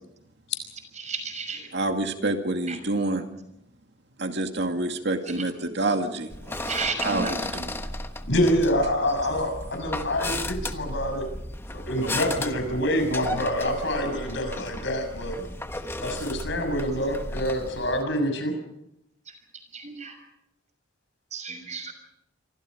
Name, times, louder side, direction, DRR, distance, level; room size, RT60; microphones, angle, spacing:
voice 1, 1.0-1.7 2.7-2.8 6.7-7.3 19.7-20.2 21.3-21.9, right 4 dB, 35° right, 7 dB, 6.0 m, -32 dB
voice 2, 1.7-3.3 4.2-6.3 6.6-6.7 7.0-7.7, right 2 dB, 60° right, 5 dB, 2.2 m, -27 dB
sound 1, 6.3-18.0, left 1 dB, 10° left, 1.2 m, -35 dB
voice 3, 8.3-11.2 11.7-15.4 16.0-18.5, equal, 65° left, 6 dB, 6.6 m, -26 dB
27.5 x 25.0 x 5.1 m, 0.82 s
head